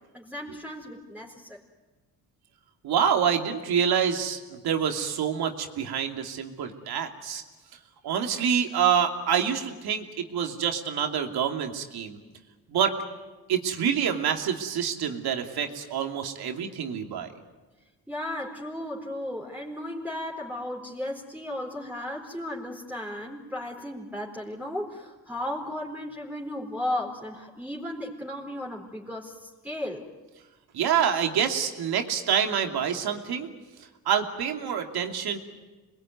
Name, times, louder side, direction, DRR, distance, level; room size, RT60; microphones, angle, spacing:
voice 1, 0.1-1.6 18.1-30.0, left 1 dB, 5° right, -2 dB, 4.3 m, -35 dB
voice 2, 2.8-7.4 8.0-12.2 12.7-13.0 13.5-17.3 30.7-33.5 34.1-35.4, right 8 dB, 75° right, 4 dB, 2.8 m, -27 dB
27.0 x 21.5 x 9.4 m, 1.2 s
cardioid pair, 80°, 38 cm